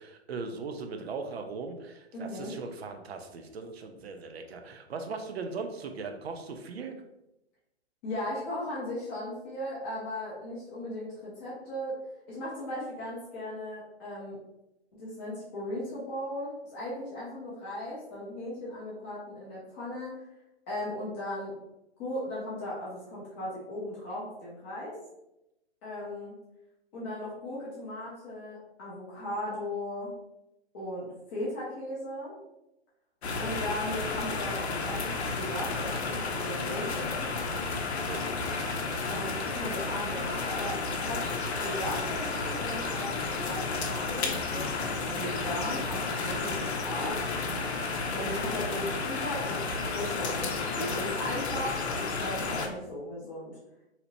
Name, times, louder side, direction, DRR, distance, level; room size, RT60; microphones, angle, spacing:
voice 1, 0.0-7.0 38.0-38.2, right 4 dB, 65° right, 6 dB, 0.5 m, -39 dB
voice 2, 2.1-2.5 8.0-12.0 12.3-14.4 14.9-20.1 20.7-21.5 22.0-25.0 25.8-26.3 26.9-30.1 30.7-32.3 33.4-37.3 39.1-40.8 41.1-41.2 41.6-47.1 48.1-49.6 49.9-53.6, left 1 dB, 10° left, -8 dB, 0.4 m, -37 dB
sound 1, 33.2-52.7, left 4 dB, 70° left, 0.6 m, -32 dB
2.8 x 2.0 x 2.8 m, 0.88 s
hypercardioid pair, 135°, 33 cm